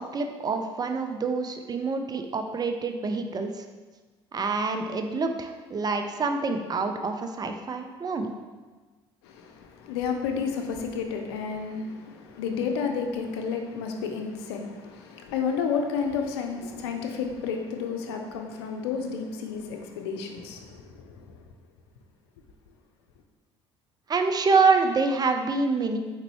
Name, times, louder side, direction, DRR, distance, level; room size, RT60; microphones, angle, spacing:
voice 1, 0.0-3.7 4.3-8.3 24.1-26.0, right 4 dB, 30° right, 6 dB, 0.5 m, -26 dB
voice 2, 9.2-21.4, left 6 dB, 80° left, 4 dB, 0.5 m, -31 dB
4.4 x 3.9 x 3.1 m, 1.3 s
hypercardioid pair, 60°, 13 cm